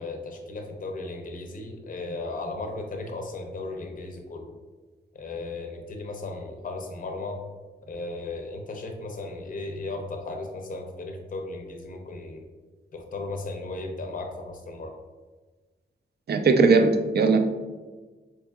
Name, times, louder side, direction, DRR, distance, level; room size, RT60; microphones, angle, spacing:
voice 1, 0.0-4.5 5.1-7.4 7.9-12.5 12.9-15.0, left 2 dB, 45° left, 3 dB, 0.5 m, -36 dB
voice 2, 16.3-17.4, right 4 dB, 60° right, 6 dB, 0.4 m, -19 dB
4.4 x 2.9 x 2.2 m, 1.3 s
wide cardioid pair, 80°, 19 cm